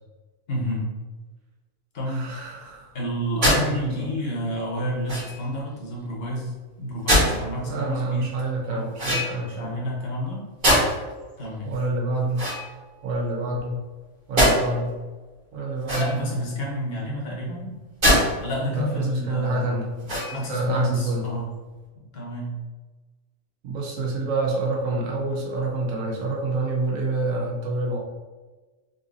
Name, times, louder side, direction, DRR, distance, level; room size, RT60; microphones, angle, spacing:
voice 1, 0.5-0.9 1.9-2.3 2.9-8.3 8.7-8.8 9.4-10.4 11.4-11.7 16.0-17.8 18.4-19.9 20.3-21.5 22.1-22.5, equal, 50° left, -3 dB, 1.0 m, -30 dB
voice 2, 2.1-2.9 3.6-4.1 7.7-9.9 11.6-12.5 13.0-13.8 14.3-14.9 15.5-16.1 18.7-21.5 23.6-28.0, right 2 dB, 75° right, -2 dB, 1.2 m, -27 dB
sound 1, 3.4-3.6 5.0-5.5 7.1-7.4 8.9-9.6 10.6-11.1 12.3-13.2 14.4-14.6 15.8-16.4 18.0-18.2 18.7-18.8 20.0-20.5, equal, 35° right, 1.3 m, -22 dB
3.9 x 2.6 x 2.5 m, 1.3 s
omnidirectional pair, 1.4 m